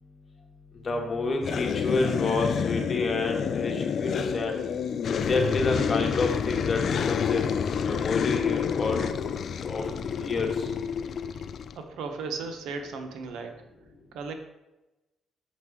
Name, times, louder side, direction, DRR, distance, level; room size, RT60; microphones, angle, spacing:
voice 1, 0.8-4.5 5.2-7.5 7.8-9.0 9.6-9.9 10.2-10.7, left 3 dB, 40° left, 2 dB, 1.4 m, -28 dB
sound 1, 1.4-11.8, left 7 dB, 55° left, 0.3 m, -29 dB
voice 2, 11.7-13.7 14.1-14.3, right 4 dB, 80° right, 5 dB, 0.9 m, -36 dB
6.3 x 5.7 x 3.6 m, 0.99 s
cardioid pair, 90°, 0 cm